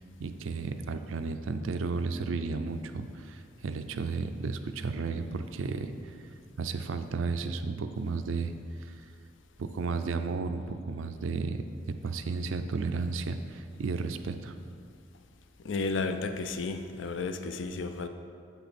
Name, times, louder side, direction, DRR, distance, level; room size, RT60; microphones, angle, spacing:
voice 1, 0.2-5.9 6.6-8.5 8.8-8.9 9.6-11.6 12.0-14.5, right 4 dB, 85° right, 9 dB, 0.5 m, -33 dB
voice 2, 15.6-18.1, left 3 dB, 70° left, 8 dB, 0.5 m, -32 dB
8.0 x 5.8 x 4.2 m, 2.3 s
head